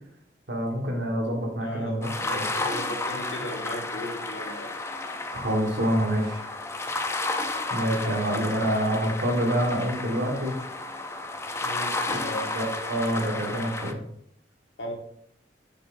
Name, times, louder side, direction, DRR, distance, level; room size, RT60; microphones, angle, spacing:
voice 1, 0.5-2.5 5.3-6.4 7.7-10.6 12.1-14.0, equal, 75° right, 1 dB, 1.5 m, -27 dB
voice 2, 1.6-2.0 2.3-4.7 11.6-12.4 14.8-14.9, left 1 dB, 80° left, 0 dB, 1.5 m, -36 dB
sound 1, 2.0-13.9, left 2 dB, 15° left, 0.4 m, -32 dB
6.6 x 5.8 x 2.6 m, 0.71 s
head